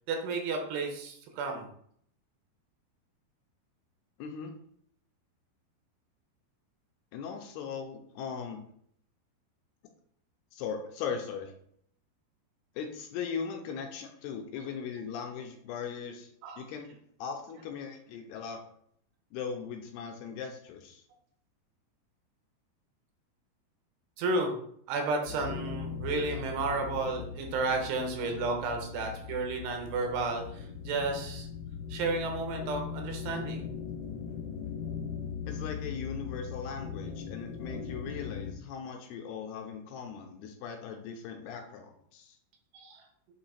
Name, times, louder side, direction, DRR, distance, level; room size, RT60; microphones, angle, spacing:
voice 1, 0.1-1.7 16.4-16.6 24.2-24.5 24.9-31.5 31.9-33.6 42.7-43.0, right 3 dB, 75° right, 3 dB, 2.9 m, -32 dB
voice 2, 4.2-4.5 7.1-8.6 10.5-11.5 12.8-16.3 16.6-18.6 19.3-21.0 35.5-42.4, left 6 dB, 85° left, 3 dB, 2.4 m, -39 dB
sound 1, 25.3-38.5, left 7 dB, 60° left, 1.7 m, -39 dB
8.1 x 2.9 x 4.2 m, 0.66 s
omnidirectional pair, 5.0 m